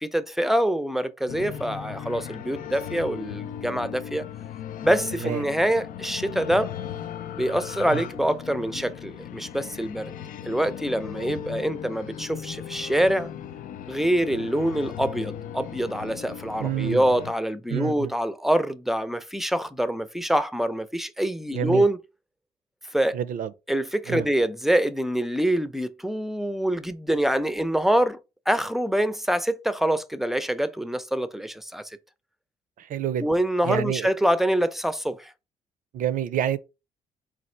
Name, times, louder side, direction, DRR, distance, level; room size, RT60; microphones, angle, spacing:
voice 1, 0.0-4.2 4.8-6.7 7.4-10.1 10.4-13.3 13.9-22.0 22.9-23.2 23.7-28.2 28.5-31.9 33.2-35.3, right 1 dB, ahead, 0.5 m, -25 dB
sound 1, 1.3-17.3, left 9 dB, 70° left, 0.4 m, -37 dB
voice 2, 16.6-17.0 17.7-18.1 21.5-21.8 23.1-23.5 24.1-24.3 32.8-33.3 33.6-34.1 35.9-36.6, right 10 dB, 65° right, 0.5 m, -28 dB
4.1 x 2.4 x 4.4 m
cardioid pair, 70°, 15 cm